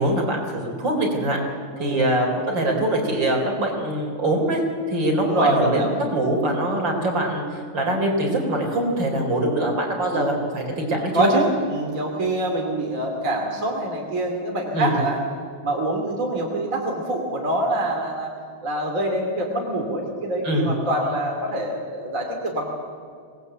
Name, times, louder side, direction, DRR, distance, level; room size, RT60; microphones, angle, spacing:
voice 1, 0.0-1.4 1.8-4.6 4.9-11.3 14.7-15.0 20.4-20.7, right 1 dB, 55° right, 1 dB, 4.8 m, -23 dB
voice 2, 5.2-5.9 10.1-10.3 11.1-15.2 15.6-18.3 18.6-22.8, right 1 dB, 35° right, 0 dB, 3.0 m, -25 dB
26.0 x 19.5 x 8.1 m, 2.3 s
omnidirectional pair, 2.4 m